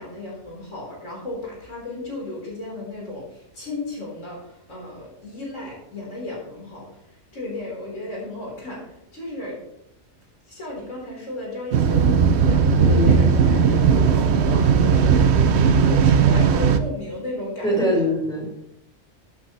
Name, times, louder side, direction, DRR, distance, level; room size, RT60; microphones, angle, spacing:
voice 1, 0.0-6.9 7.3-9.6 10.5-15.3 15.7-18.0, left 2 dB, 70° left, -4 dB, 4.4 m, -34 dB
sound 1, 11.7-16.8, right 6 dB, 60° right, 0.9 m, -17 dB
voice 2, 17.6-18.6, equal, 5° left, -4 dB, 4.4 m, -22 dB
15.0 x 9.0 x 3.1 m, 0.78 s
omnidirectional pair, 1.3 m